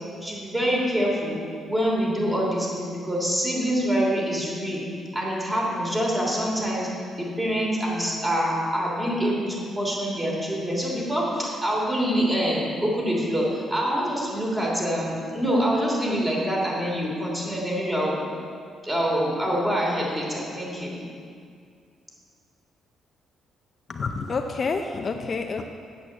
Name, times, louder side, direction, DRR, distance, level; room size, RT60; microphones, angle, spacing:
voice 1, 0.1-1.4 1.7-4.8 5.1-6.9 7.2-18.2 18.8-21.0, equal, 15° right, -4 dB, 3.2 m, -25 dB
voice 2, 23.9-25.6, left 4 dB, 40° left, 5 dB, 0.6 m, -28 dB
8.4 x 8.1 x 7.3 m, 2.2 s
cardioid pair, 110°, 0 cm